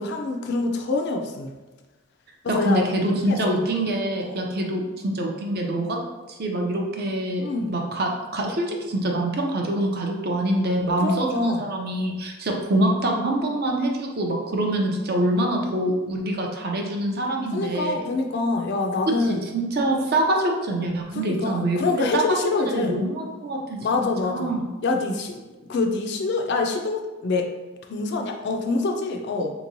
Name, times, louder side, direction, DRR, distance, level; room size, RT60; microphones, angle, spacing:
voice 1, 0.0-1.5 2.4-2.9 3.3-3.4 3.8-3.9 4.2-4.4 7.4-7.7 11.0-11.6 17.5-19.4 21.1-23.0 23.7-24.5 24.8-27.5 27.9-29.5, left 3 dB, 55° left, 3 dB, 0.4 m, -26 dB
voice 2, 2.5-6.0 6.3-7.4 7.7-18.1 19.2-22.2 22.6-24.7 29.4-29.5, right 1 dB, 50° right, 1 dB, 0.5 m, -25 dB
3.6 x 3.0 x 2.6 m, 1.2 s
head